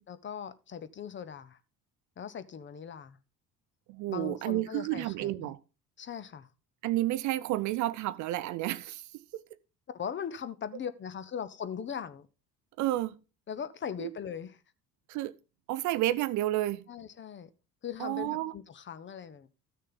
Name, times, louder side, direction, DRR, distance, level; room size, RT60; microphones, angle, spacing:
voice 1, 0.1-1.6 2.2-3.2 4.1-5.5 6.0-6.5 9.9-12.3 13.5-14.6 16.9-17.5 17.8-19.5, left 7 dB, 25° left, 0.7 m, -39 dB
voice 2, 3.9-5.6 6.8-9.4 12.8-13.1 14.0-14.1 15.1-15.3 15.7-16.8 18.0-18.5, right 15 dB, 40° right, 0.5 m, -31 dB
13.5 x 6.5 x 3.8 m
figure-of-eight pair, 55°, 45 cm